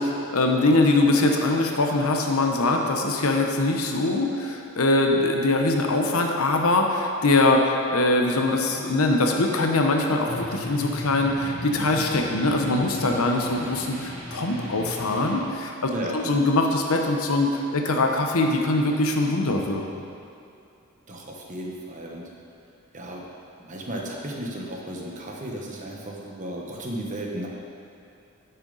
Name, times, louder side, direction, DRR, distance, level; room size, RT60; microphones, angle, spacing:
voice 1, 0.0-20.0, left 2 dB, 85° left, 2 dB, 0.9 m, -22 dB
sound 1, 10.2-15.3, left 1 dB, 75° right, 2.1 m, -36 dB
voice 2, 15.9-16.3 21.1-22.3 22.9-23.3 23.6-27.5, right 1 dB, 35° right, -1 dB, 1.1 m, -34 dB
10.0 x 6.8 x 4.0 m, 2.5 s
head